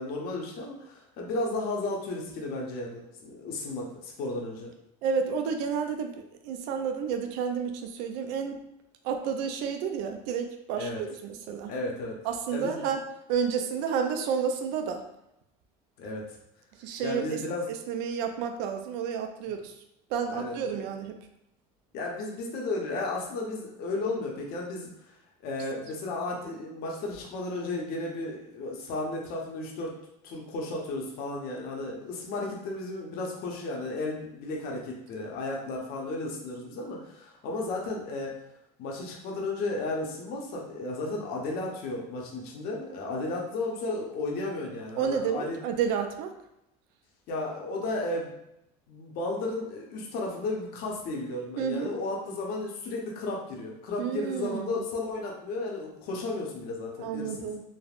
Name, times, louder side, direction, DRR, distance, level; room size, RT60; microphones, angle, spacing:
voice 1, 0.0-4.7 10.8-11.0 11.7-12.1 12.5-12.8 16.0-16.3 17.0-17.7 20.3-20.8 21.9-24.9 25.4-30.0 30.2-38.3 38.8-45.6 47.3-48.3 48.9-57.5, left 2 dB, 60° left, -1 dB, 0.7 m, -34 dB
voice 2, 5.0-8.6 9.0-11.7 12.2-13.0 13.3-15.0 16.8-17.4 17.9-19.7 20.1-21.2 45.0-46.3 51.6-51.9 54.0-54.7 57.0-57.6, right 7 dB, 70° right, 5 dB, 0.4 m, -30 dB
3.3 x 2.0 x 2.3 m, 0.82 s
cardioid pair, 125°, 18 cm